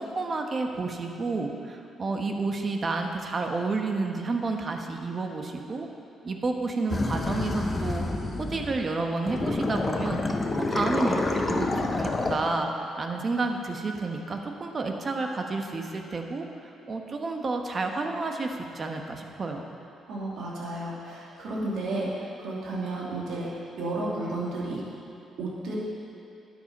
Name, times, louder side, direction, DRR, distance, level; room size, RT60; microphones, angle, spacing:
voice 1, 0.0-5.9 6.2-8.0 8.4-10.2 10.6-19.6, right 3 dB, 40° right, 3 dB, 1.1 m, -30 dB
sound 1, 6.9-8.9 9.3-12.4, left 2 dB, 30° left, 1.0 m, -28 dB
voice 2, 20.1-23.5 23.8-24.8 25.4-25.8, right 2 dB, 75° right, -5 dB, 2.6 m, -32 dB
12.5 x 9.2 x 4.2 m, 2.7 s
cardioid pair, 90°, 0 cm